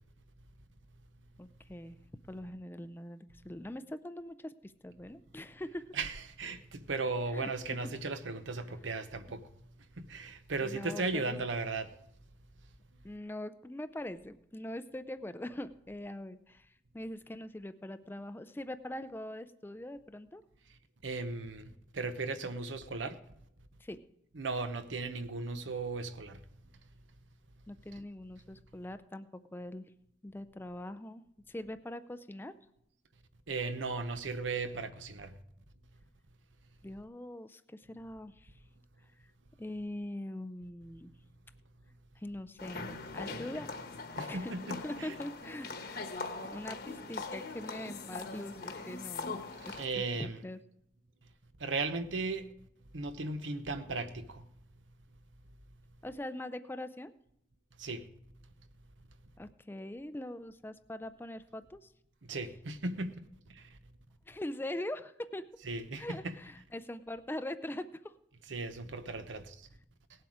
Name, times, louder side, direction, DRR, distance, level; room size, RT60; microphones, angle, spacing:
voice 1, 1.4-2.0 2.3-5.9 7.3-7.8 10.6-11.4 13.0-20.4 23.8-24.0 27.7-29.9 30.2-32.5 36.8-38.5 39.6-41.1 42.2-43.7 44.3-46.1 46.4-50.6 56.0-57.1 59.4-61.9 64.3-65.4 66.0-68.2, left 1 dB, 10° left, 0.4 m, -42 dB
voice 2, 5.9-9.5 10.0-11.9 21.0-23.2 24.3-26.4 33.5-35.3 44.2-45.1 49.6-50.4 51.6-52.5 52.9-54.5 57.8-58.1 62.2-63.8 65.7-66.3 68.5-69.7, right 3 dB, 90° right, 0.9 m, -37 dB
sound 1, 42.6-49.8, left 3 dB, 55° left, 1.2 m, -41 dB
18.0 x 7.8 x 4.9 m
head